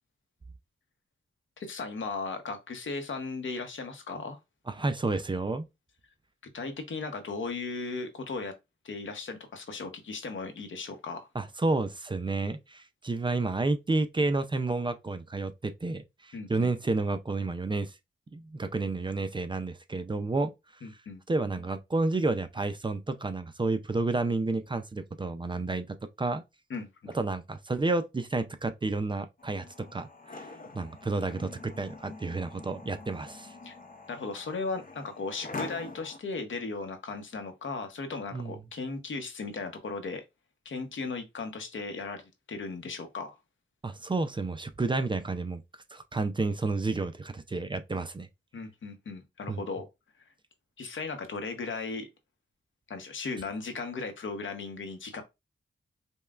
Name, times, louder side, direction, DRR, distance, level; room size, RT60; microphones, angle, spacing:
voice 1, 1.6-4.4 6.5-8.5 8.8-11.3 16.3-16.7 20.8-21.2 26.7-27.1 33.6-33.7 34.1-40.2 40.6-43.4 48.5-49.8 50.8-52.1 52.9-55.2, left 4 dB, 75° left, 0.9 m, -36 dB
voice 2, 4.7-5.7 11.3-18.0 18.3-20.9 21.3-26.4 27.1-33.6 38.3-38.6 43.8-48.3 49.5-49.6, right 3 dB, 25° right, 0.4 m, -31 dB
sound 1, 29.4-36.2, left 3 dB, 45° left, 0.6 m, -44 dB
5.3 x 2.2 x 2.3 m
wide cardioid pair, 85°, 20 cm